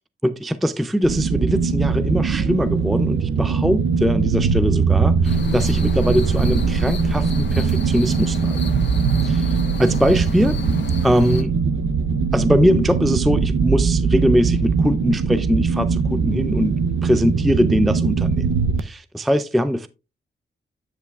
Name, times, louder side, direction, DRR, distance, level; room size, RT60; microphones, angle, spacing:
voice 1, 0.2-8.7 9.2-10.6 11.0-11.5 12.3-18.5 18.8-19.9, equal, ahead, 0.3 m, -21 dB
sound 1, 1.0-18.8, right 5 dB, 80° right, 0.6 m, -21 dB
sound 2, 5.2-11.4, left 5 dB, 60° left, 1.2 m, -33 dB
9.3 x 8.0 x 2.3 m
wide cardioid pair, 130°, 20 cm